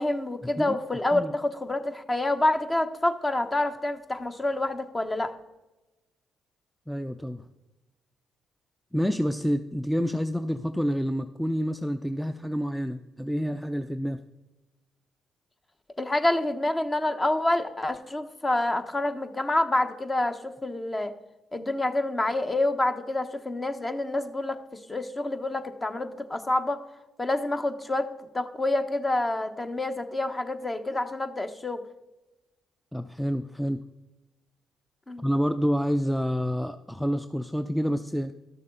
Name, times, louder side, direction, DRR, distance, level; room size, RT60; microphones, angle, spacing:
voice 1, 0.0-5.3 16.0-21.1 21.5-26.8 27.2-31.8 35.1-35.2, left 2 dB, 25° left, 8 dB, 0.9 m, -27 dB
voice 2, 6.9-7.4 8.9-14.2 32.9-33.8 35.2-38.3, equal, ahead, 9 dB, 0.5 m, -28 dB
12.0 x 6.6 x 3.8 m, 1.0 s
hypercardioid pair, 50°, 0 cm